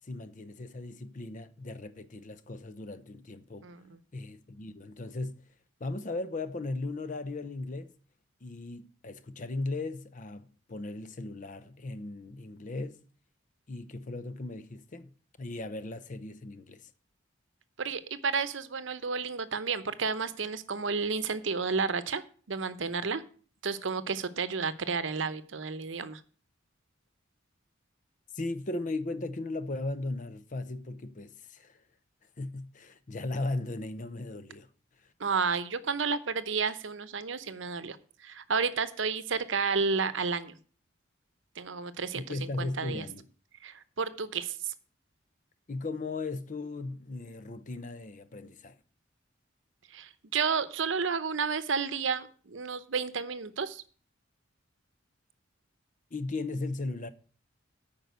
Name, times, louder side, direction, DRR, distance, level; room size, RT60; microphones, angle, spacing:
voice 1, 0.0-3.7 4.1-5.4 5.8-8.0 8.4-13.0 13.7-15.1 15.4-16.9 28.3-31.8 32.4-34.7 35.0-35.1 42.1-43.3 45.7-48.8 56.1-57.1, left 2 dB, 40° left, 0.7 m, -37 dB
voice 2, 3.6-4.0 17.8-22.2 22.5-23.2 23.6-26.2 35.2-38.0 38.2-40.6 41.6-43.1 43.6-44.5 49.9-53.8, right 5 dB, 65° right, 0.8 m, -31 dB
9.2 x 5.5 x 8.0 m
head